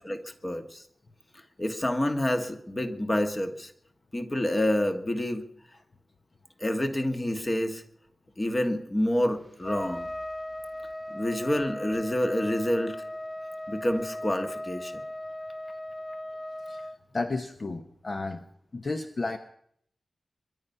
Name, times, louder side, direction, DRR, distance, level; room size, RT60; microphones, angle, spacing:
voice 1, 0.0-0.8 1.6-3.7 4.1-5.5 6.6-7.8 8.4-10.1 11.1-13.0 13.7-14.9, left 1 dB, 20° left, 6 dB, 1.5 m, -28 dB
Trumpet, 9.6-17.0, left 1 dB, ahead, 0.7 m, -37 dB
voice 2, 17.1-18.4 18.7-19.4, left 3 dB, 35° left, 7 dB, 0.8 m, -32 dB
23.5 x 11.0 x 5.5 m, 0.67 s
wide cardioid pair, 170°, 0 cm